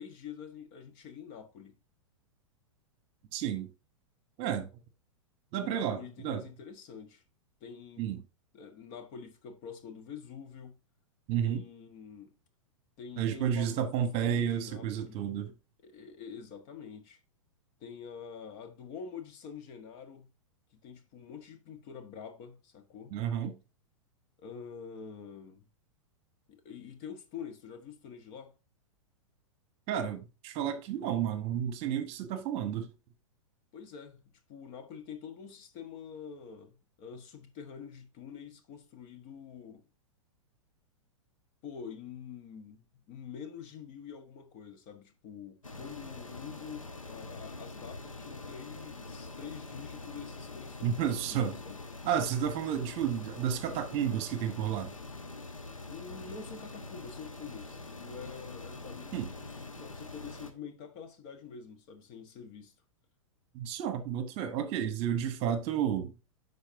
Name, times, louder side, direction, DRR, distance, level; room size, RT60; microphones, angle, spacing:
voice 1, 0.0-1.8 5.5-7.2 7.6-8.1 8.5-10.8 11.4-12.3 13.0-15.3 15.8-17.2 17.8-20.3 20.7-23.2 24.4-25.7 26.5-28.5 33.7-39.9 41.6-51.9 55.9-62.8, left 7 dB, 40° left, 1.4 m, -46 dB
voice 2, 3.3-3.7 4.4-4.7 5.5-6.4 8.0-8.2 11.3-11.6 13.2-15.5 23.1-23.5 29.9-32.9 50.8-51.6 52.0-54.9 59.1-59.3 63.5-66.1, right 9 dB, 35° right, 1.2 m, -31 dB
sound 1, 45.6-60.5, left 3 dB, 85° left, 1.1 m, -44 dB
11.5 x 4.2 x 2.8 m
figure-of-eight pair, 100°, 17 cm